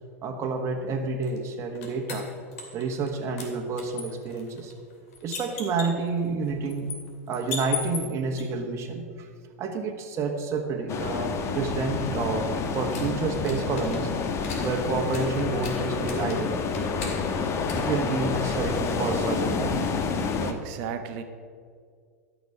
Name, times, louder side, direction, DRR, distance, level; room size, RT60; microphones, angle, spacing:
voice 1, 0.2-2.3 2.7-4.7 5.2-6.9 7.3-9.3 9.6-14.1 14.6-16.6 17.7-19.8, right 4 dB, 35° right, 1 dB, 1.4 m, -29 dB
sound 1, 1.2-3.1 3.4-8.4 11.2-18.7, left 5 dB, 65° left, 2.5 m, -40 dB
sound 2, 10.9-20.5, left 5 dB, 35° left, 1.2 m, -29 dB
voice 2, 20.4-21.2, right 7 dB, 55° right, 8 dB, 1.1 m, -34 dB
13.0 x 6.3 x 6.8 m, 2.1 s
hypercardioid pair, 100°, 8 cm